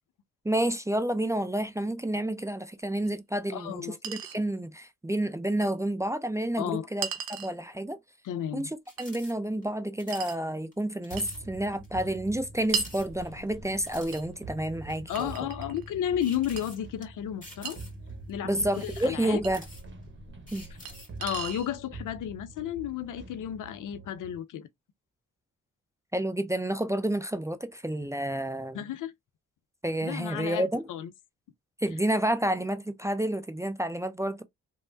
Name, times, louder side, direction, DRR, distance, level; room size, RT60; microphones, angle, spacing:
voice 1, 0.4-7.1 7.4-8.0 8.5-15.3 18.4-19.6 20.5-20.7 26.1-28.8 29.8-30.9 31.8-34.4, right 1 dB, 10° right, 0.4 m, -30 dB
Chink clink, 3.1-3.2 4.0-4.4 5.6-5.7 7.0-7.6 9.0-9.1 10.1-10.4 11.2-11.4 12.7-13.0 14.1-14.3 15.2-15.9 16.6-16.7 17.7-17.8 19.4-19.5 20.9-21.0 21.2-21.7, right 8 dB, 80° right, 0.6 m, -35 dB
voice 2, 3.5-4.0 6.6-6.9 8.2-8.7 15.1-17.8 18.3-18.5 19.0-19.4 21.2-24.7 28.7-29.1 30.0-31.1, left 10 dB, 65° left, 0.5 m, -32 dB
sound 1, 8.8-9.3 9.6-9.7 10.0-10.4 10.7-10.8 11.0-11.4 11.8-11.9 12.6-13.5 13.9-14.2 14.9-15.4 16.2-17.0 17.4-18.1 18.6-20.0 20.5-21.2, left 1 dB, 25° left, 1.9 m, -49 dB
sound 2, 11.1-24.4, right 2 dB, 35° right, 1.0 m, -45 dB
3.1 x 2.0 x 2.5 m
hypercardioid pair, 40°, 35 cm